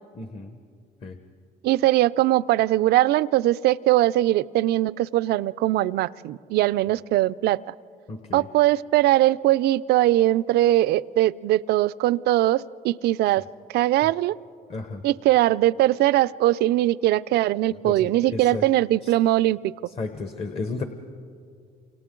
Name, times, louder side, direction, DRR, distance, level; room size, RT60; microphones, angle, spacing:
voice 1, 0.1-0.6 1.0-1.2 8.1-8.5 14.7-15.0 17.7-18.6 19.0-19.1 19.9-20.8, left 3 dB, 35° left, 7 dB, 1.1 m, -33 dB
voice 2, 1.6-7.6 8.3-13.4 13.7-14.3 15.0-19.7, right 15 dB, 75° right, 16 dB, 0.4 m, -21 dB
29.0 x 26.5 x 3.8 m, 2.3 s
cardioid pair, 110°, 17 cm